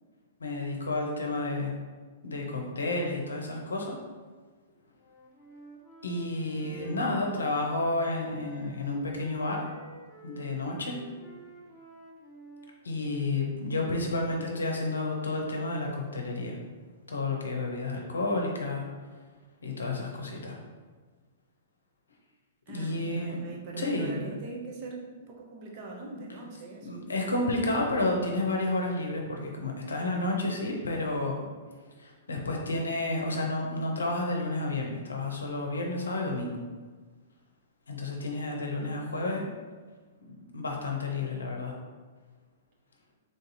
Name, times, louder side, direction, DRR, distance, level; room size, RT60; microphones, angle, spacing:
voice 1, 0.4-1.7 2.2-4.0 6.0-9.6 10.2-11.0 12.8-16.6 17.1-18.8 19.6-20.6 22.7-23.4 23.8-24.2 26.8-31.4 32.0-36.6 37.9-39.4 40.2-41.7, left 2 dB, 80° left, 1 dB, 0.7 m, -31 dB
Wind instrument woodwind instrument, 4.9-8.7 9.1-13.6, right 2 dB, 15° left, 0.7 m, -52 dB
voice 2, 6.6-7.2 22.7-27.0, right 3 dB, 40° right, -1 dB, 0.9 m, -41 dB
3.5 x 2.6 x 4.0 m, 1.4 s
figure-of-eight pair, 110°, 0 cm